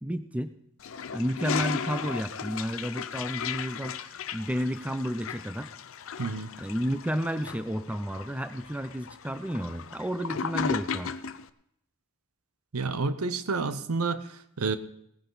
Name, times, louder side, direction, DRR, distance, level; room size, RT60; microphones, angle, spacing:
voice 1, 0.0-0.5 1.1-4.0 4.3-5.7 6.6-11.1, equal, 5° right, 10 dB, 0.5 m, -31 dB
Toilet flush, 0.8-11.5, left 6 dB, 65° left, 0.5 m, -36 dB
voice 2, 6.2-6.5 12.7-14.8, right 4 dB, 85° right, 13 dB, 0.8 m, -29 dB
17.5 x 10.0 x 4.0 m, 0.73 s
head